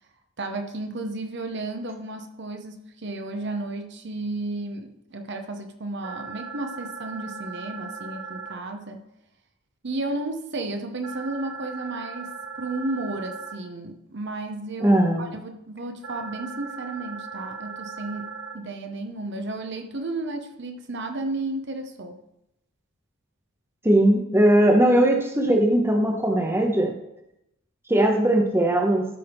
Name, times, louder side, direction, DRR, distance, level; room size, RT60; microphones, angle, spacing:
voice 1, 0.4-9.0 9.8-22.2, right 2 dB, 50° right, 6 dB, 0.8 m, -33 dB
sound 1, 6.0-8.5 11.0-13.5 16.0-18.5, right 5 dB, 75° right, 1.2 m, -38 dB
voice 2, 14.8-15.3 23.8-26.9 27.9-29.1, right 1 dB, 10° right, 3 dB, 0.8 m, -19 dB
12.5 x 5.5 x 3.5 m, 0.84 s
head